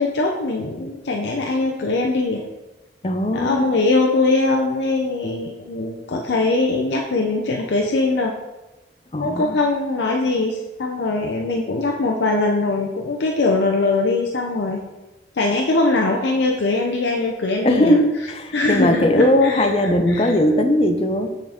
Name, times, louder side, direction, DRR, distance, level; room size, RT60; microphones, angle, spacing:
voice 1, 0.0-2.4 3.3-8.3 9.2-14.8 15.3-18.0 18.5-20.3, left 3 dB, 80° left, 0 dB, 0.6 m, -21 dB
voice 2, 3.0-3.7 9.1-9.6 17.6-21.4, left 1 dB, 30° left, 6 dB, 0.5 m, -19 dB
8.6 x 3.9 x 3.5 m, 1.1 s
head